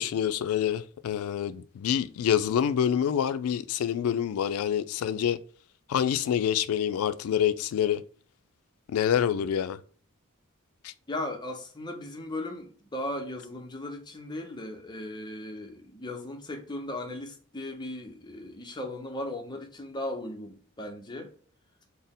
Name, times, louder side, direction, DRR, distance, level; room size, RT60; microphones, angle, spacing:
voice 1, 0.0-5.4 5.9-8.0 8.9-9.8 10.8-10.9, left 9 dB, 75° left, 0.3 m, -27 dB
voice 2, 11.1-21.3, left 1 dB, 20° left, 0.6 m, -37 dB
4.2 x 2.0 x 3.5 m
head